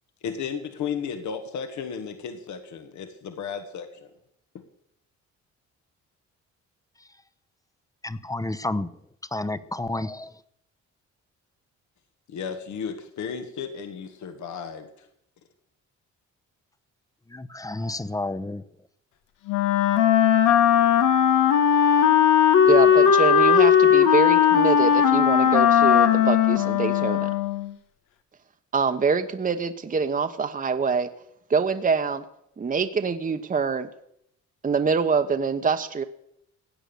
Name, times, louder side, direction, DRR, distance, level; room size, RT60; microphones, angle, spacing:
voice 1, 0.2-4.1 12.3-15.1, left 6 dB, 70° left, 7 dB, 1.6 m, -34 dB
voice 2, 8.0-8.9 9.3-10.3 17.3-18.6, left 2 dB, 10° left, 15 dB, 0.8 m, -30 dB
Wind instrument woodwind instrument, 19.5-27.7, left 8 dB, 90° left, 1.2 m, -18 dB
voice 3, 22.7-27.3 28.7-31.1 31.5-32.2 32.6-33.9 34.6-36.0, right 5 dB, 25° right, 8 dB, 1.0 m, -25 dB
16.5 x 9.0 x 6.9 m, 0.75 s
cardioid pair, 90°, 30 cm